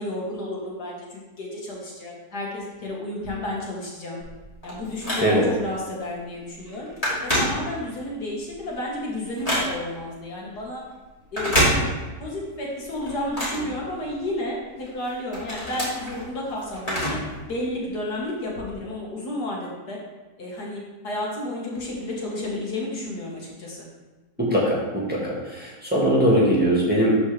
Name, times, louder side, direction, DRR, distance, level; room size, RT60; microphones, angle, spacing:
voice 1, 0.0-4.2 4.6-6.9 7.2-10.8 11.3-11.6 12.2-17.2 17.5-20.0 20.4-23.9, left 1 dB, 70° left, -4 dB, 2.3 m, -31 dB
Telephone, 4.2-5.6 6.1-6.3 6.6-8.1 8.5-10.0 11.2-12.3 12.6-14.4 14.9-17.4 17.7-17.8 18.6-18.7, equal, 20° left, 2.9 m, -27 dB
voice 2, 24.4-27.2, right 1 dB, 5° right, -5 dB, 1.6 m, -21 dB
12.5 x 4.5 x 3.4 m, 1.2 s
omnidirectional pair, 1.8 m